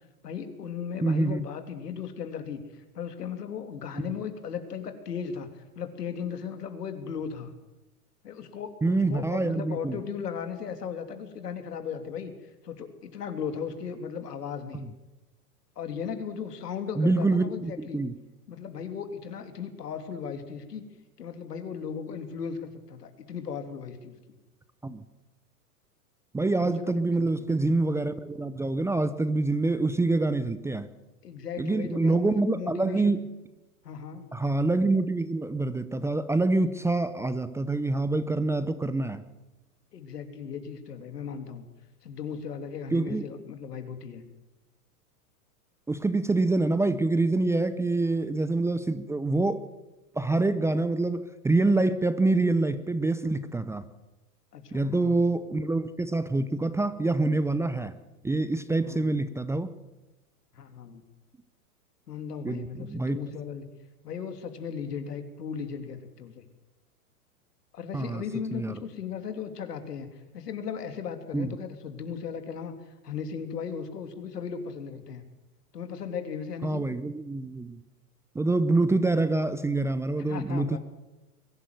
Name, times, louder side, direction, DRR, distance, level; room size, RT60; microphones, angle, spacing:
voice 1, 0.2-5.5 5.7-7.5 8.2-12.3 12.6-14.9 15.8-18.0 18.5-20.8 21.2-24.4 26.6-27.3 31.2-33.3 33.8-34.3 39.9-41.6 42.0-44.2 54.5-55.2 58.9-59.1 60.5-61.0 62.1-63.7 64.0-66.4 67.7-70.1 70.3-72.8 73.0-75.2 75.7-76.9 80.3-80.8, left 7 dB, 80° left, 8 dB, 3.1 m, -36 dB
voice 2, 1.0-1.5 4.0-4.1 8.8-10.0 14.7-14.9 17.0-18.2 24.8-25.0 26.3-30.9 31.6-33.3 34.3-39.2 42.9-43.3 45.9-49.7 50.1-53.9 54.7-57.9 58.2-59.7 62.4-63.2 67.9-68.2 68.5-68.8 71.3-71.5 76.6-77.8 78.3-80.8, right 2 dB, 5° right, 13 dB, 0.7 m, -26 dB
22.0 x 12.5 x 9.4 m, 1.1 s
hypercardioid pair, 115°, 46 cm